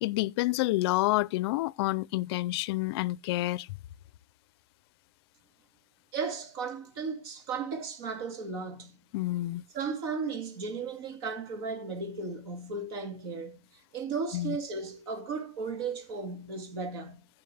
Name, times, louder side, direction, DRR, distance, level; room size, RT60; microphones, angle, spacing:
voice 1, 0.0-3.7 9.1-9.6 14.3-14.6, left 18 dB, 60° left, 0.5 m, -28 dB
voice 2, 6.1-9.1 9.7-13.7 13.9-17.3, right 4 dB, 60° right, 2.3 m, -35 dB
15.5 x 6.0 x 3.3 m
supercardioid pair, 155°, 15 cm